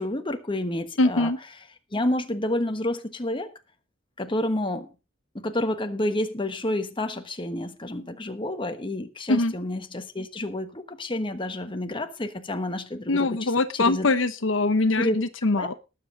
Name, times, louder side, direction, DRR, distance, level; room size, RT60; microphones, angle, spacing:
voice 1, 0.0-1.3 1.9-3.5 4.2-4.9 5.3-14.1 15.0-15.2 15.5-15.7, left 1 dB, 25° left, 1.2 m, -29 dB
voice 2, 1.0-1.4 9.3-9.5 13.1-15.7, left 2 dB, 75° left, 0.9 m, -23 dB
19.0 x 7.6 x 3.8 m
head